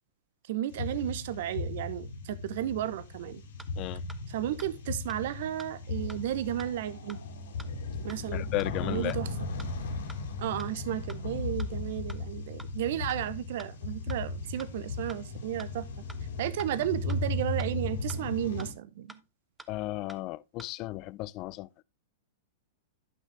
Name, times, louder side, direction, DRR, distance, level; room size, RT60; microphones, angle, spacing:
voice 1, 0.5-3.4 4.3-7.2 8.0-8.5 8.8-9.3 10.4-15.8 16.4-19.2, right 12 dB, 60° right, 0.8 m, -33 dB
sound 1, 0.7-18.7, left 3 dB, 75° left, 2.1 m, -36 dB
sound 2, 3.6-3.7 4.1-4.2 4.6-4.7 5.1-5.2 5.6-5.7 6.1-6.2 6.6-6.7 7.1-7.2 7.6-7.7 8.1-8.2 8.6-8.7 9.1-9.2 9.6-9.7 10.1-10.2 10.6-10.7 11.1-11.2 11.6-11.7 12.1-12.2 12.6-12.7 13.1-13.2 13.6-13.7 14.1-14.2 14.6-14.7 15.1-15.2 15.6-15.7 16.1-16.2 16.6-16.7 17.1-17.2 17.6-17.7 18.1-18.2 18.6-18.7 19.1-19.2 19.6-19.7 20.1-20.2 20.6-20.7, right 1 dB, 5° right, 0.9 m, -48 dB
voice 2, 8.3-9.2 19.7-21.8, left 18 dB, 40° left, 0.4 m, -34 dB
11.5 x 5.8 x 3.4 m
hypercardioid pair, 110°, 0 cm